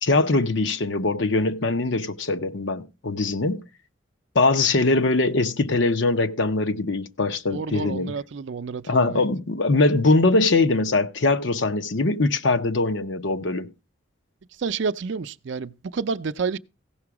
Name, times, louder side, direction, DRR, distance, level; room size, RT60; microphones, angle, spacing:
voice 1, 0.0-3.6 4.3-8.2 8.9-13.7, left 3 dB, 65° left, 0.8 m, -22 dB
voice 2, 7.5-9.2 14.6-16.6, right 5 dB, 65° right, 0.4 m, -29 dB
16.0 x 6.0 x 4.8 m
head